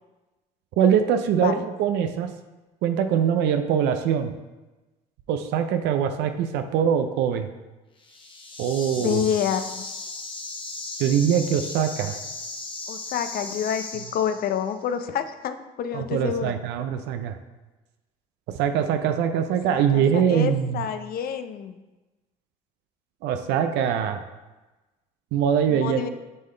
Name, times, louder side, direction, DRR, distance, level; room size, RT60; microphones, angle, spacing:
voice 1, 0.8-2.3 2.8-4.3 5.3-7.5 8.6-9.2 11.0-12.2 15.9-17.3 18.6-20.8 23.2-24.2 25.3-26.0, right 8 dB, 70° right, 8 dB, 0.5 m, -23 dB
sound 1, 8.0-14.7, left 3 dB, 25° left, 1.2 m, -37 dB
voice 2, 8.9-9.9 12.9-16.5 19.7-21.8 25.7-26.1, left 8 dB, 55° left, 10 dB, 0.6 m, -28 dB
9.4 x 3.7 x 3.2 m, 1.1 s
supercardioid pair, 70°, 19 cm